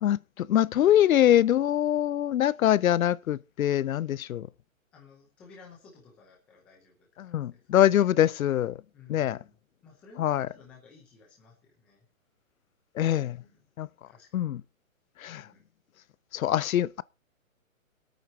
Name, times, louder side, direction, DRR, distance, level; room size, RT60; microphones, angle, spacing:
voice 1, 0.0-4.5 7.2-8.8 9.1-9.4 10.2-10.5 13.0-13.4 13.8-13.9 14.3-14.6 15.2-15.5 16.3-17.0, left 11 dB, 85° left, 0.6 m, -24 dB
voice 2, 4.9-7.6 8.9-9.4 9.8-12.0 13.4-13.6 14.1-14.5 15.4-15.6, left 4 dB, 5° left, 0.6 m, -55 dB
23.5 x 9.1 x 2.8 m
hypercardioid pair, 170°, 40 cm